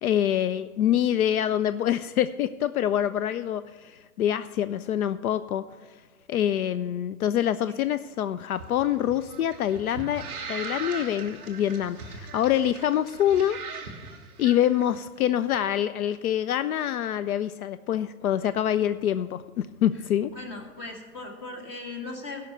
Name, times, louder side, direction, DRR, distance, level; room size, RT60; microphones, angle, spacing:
voice 1, 0.0-5.6 6.3-13.6 14.4-20.3, left 10 dB, 75° left, 13 dB, 0.5 m, -26 dB
sound 1, 8.5-14.8, right 5 dB, 10° right, 0.3 m, -39 dB
voice 2, 20.2-22.4, left 3 dB, 25° left, 2 dB, 1.8 m, -38 dB
13.5 x 5.7 x 6.4 m, 1.4 s
hypercardioid pair, 135°, 44 cm